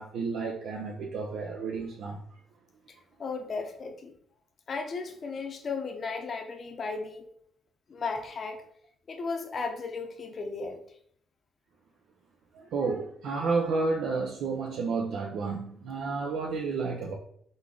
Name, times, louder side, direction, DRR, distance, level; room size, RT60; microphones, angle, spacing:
voice 1, 0.0-2.2 12.5-17.1, right 4 dB, 80° right, 0.6 m, -31 dB
voice 2, 3.2-4.1 4.7-7.3 7.9-8.6 9.1-10.8, left 4 dB, 45° left, 0.7 m, -35 dB
4.0 x 3.5 x 3.6 m
cardioid pair, 90°, 0 cm